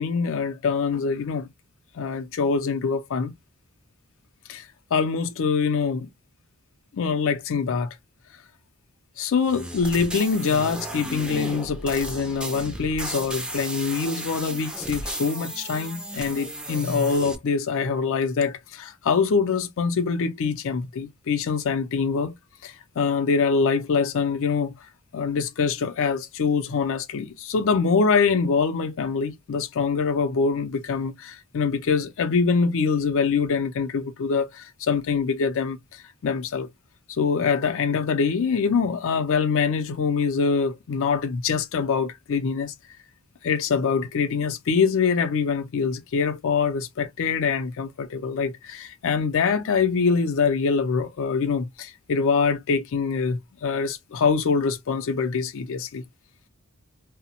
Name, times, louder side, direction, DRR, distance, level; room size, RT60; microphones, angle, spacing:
voice 1, 0.0-1.5 1.9-3.3 4.5-4.7 4.9-6.1 7.0-7.9 9.2-22.3 22.6-24.7 25.1-36.7 37.1-42.7 43.4-56.0, left 5 dB, 60° left, 0.4 m, -24 dB
sound 1, 9.4-17.4, right 1 dB, 5° right, 0.4 m, -34 dB
2.7 x 2.0 x 2.8 m
head